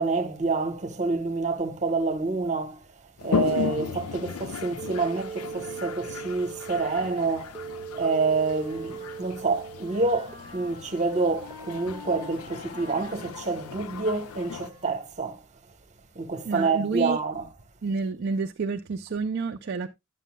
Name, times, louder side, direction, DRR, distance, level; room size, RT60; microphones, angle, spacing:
voice 1, 0.0-2.8 3.2-7.5 7.9-15.4 16.1-17.5, right 3 dB, 35° right, 1.0 m, -27 dB
Toilet flush, 3.2-14.7, left 6 dB, 85° left, 0.4 m, -36 dB
sound 1, 4.8-10.3, right 7 dB, 5° right, 1.0 m, -39 dB
Wind instrument woodwind instrument, 8.6-15.2, left 2 dB, 20° left, 4.7 m, -48 dB
voice 2, 16.4-17.2 17.8-19.9, right 4 dB, 50° right, 0.4 m, -29 dB
9.9 x 9.1 x 2.2 m
head